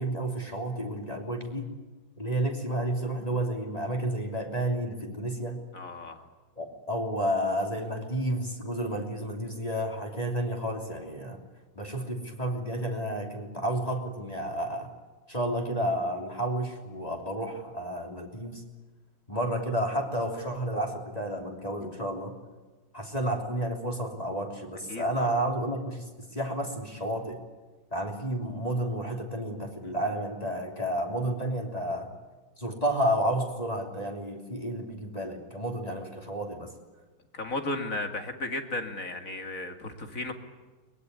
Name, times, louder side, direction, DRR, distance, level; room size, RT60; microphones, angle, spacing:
voice 1, 0.0-1.7 2.2-5.6 6.6-11.4 11.7-14.9 15.3-18.6 19.3-22.3 22.9-27.4 27.9-32.1 32.6-36.7, right 1 dB, 20° left, 1 dB, 3.3 m, -31 dB
voice 2, 5.7-6.2 24.9-25.3 37.3-40.3, left 2 dB, 40° left, 5 dB, 2.5 m, -34 dB
23.0 x 21.5 x 9.7 m, 1.3 s
omnidirectional pair, 2.3 m